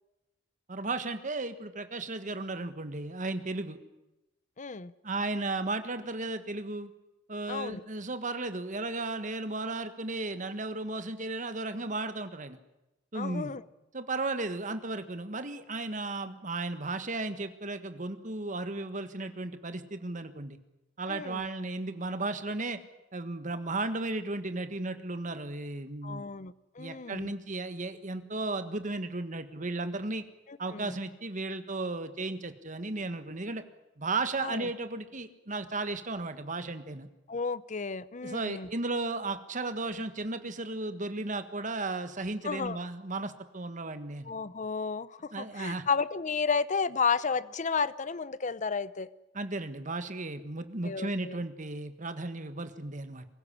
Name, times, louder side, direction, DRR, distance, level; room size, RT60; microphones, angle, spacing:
voice 1, 0.7-3.8 5.0-6.9 7.3-12.6 13.1-13.5 13.9-20.6 21.0-22.8 23.1-26.3 26.8-30.2 30.6-33.6 34.0-37.1 38.2-44.3 45.3-45.8 49.3-53.3, right 2 dB, 40° right, 10 dB, 1.6 m, -35 dB
voice 2, 4.6-4.9 7.5-7.8 13.1-13.6 21.1-21.5 26.0-27.3 30.5-31.0 34.4-34.7 37.3-38.7 42.4-42.8 44.2-49.1 50.8-51.4, left 5 dB, 40° left, 17 dB, 0.7 m, -32 dB
23.5 x 16.0 x 10.0 m, 0.98 s
head